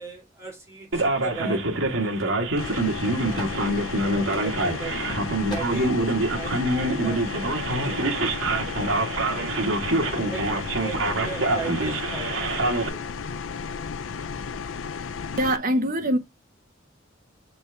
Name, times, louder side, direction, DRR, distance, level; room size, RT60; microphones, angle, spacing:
voice 1, 0.0-5.0 5.5-9.8 10.3-12.6 12.8-13.1, right 4 dB, 15° right, 3.5 m, -39 dB
sound 1, 0.9-1.2 2.1-2.3 2.5-2.6 3.3-3.6 4.3-4.5 5.0-5.1 5.5-5.8, left 2 dB, 25° left, 5.1 m, -42 dB
Male speech man speaking, 0.9-12.9, right 2 dB, 85° right, 1.6 m, -25 dB
sound 2, 2.6-15.6, left 6 dB, 85° left, 0.5 m, -34 dB
voice 2, 15.4-16.2, right 1 dB, 45° right, 1.2 m, -23 dB
6.7 x 4.4 x 3.4 m
head